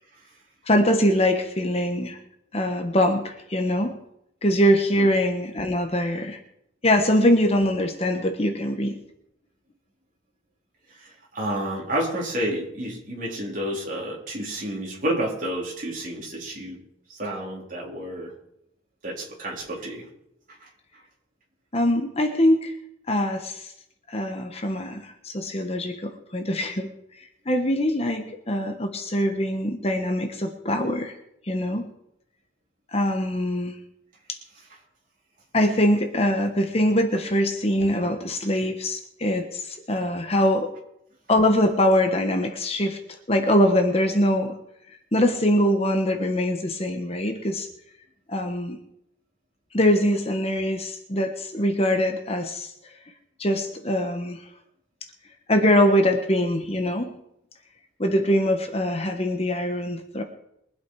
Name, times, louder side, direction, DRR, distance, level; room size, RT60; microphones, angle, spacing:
voice 1, 0.7-2.2 2.5-4.0 4.4-6.4 6.8-9.0 21.7-22.7 23.1-23.7 24.1-26.9 27.5-31.1 31.5-31.9 32.9-33.7 34.3-34.4 35.5-40.7 41.3-43.0 43.3-44.6 45.1-47.7 48.3-48.8 49.7-52.7 53.4-54.4 55.5-57.2 58.0-60.2, equal, 30° left, 5 dB, 1.2 m, -23 dB
voice 2, 11.0-16.8 17.1-18.3 19.0-20.1 20.6-20.7, right 1 dB, 45° right, -3 dB, 3.9 m, -30 dB
22.5 x 8.2 x 4.8 m, 0.78 s
head